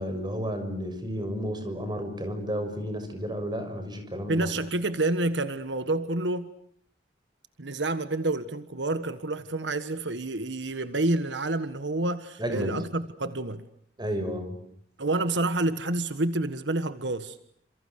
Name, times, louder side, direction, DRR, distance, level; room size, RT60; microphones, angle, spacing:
voice 1, 0.0-4.5 12.4-12.8 14.0-14.6, equal, 25° right, 6.5 m, -32 dB
voice 2, 4.3-6.5 7.6-13.7 15.0-17.4, right 2 dB, 80° right, 1.5 m, -28 dB
29.0 x 28.0 x 6.6 m
head